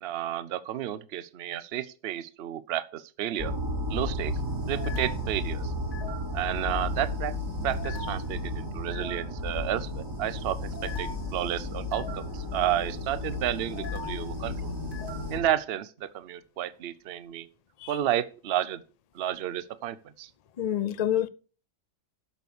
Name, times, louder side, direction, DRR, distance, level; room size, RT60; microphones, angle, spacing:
voice 1, 0.0-3.5 3.9-4.3 4.7-5.7 6.3-7.3 7.6-14.7 15.3-17.5 17.9-18.8 19.1-20.3, right 11 dB, 55° right, 0.8 m, -31 dB
sound 1, 3.4-15.5, left 1 dB, 20° right, 3.2 m, -33 dB
voice 2, 20.6-21.3, left 10 dB, 55° left, 0.4 m, -27 dB
8.1 x 6.9 x 6.8 m
omnidirectional pair, 1.4 m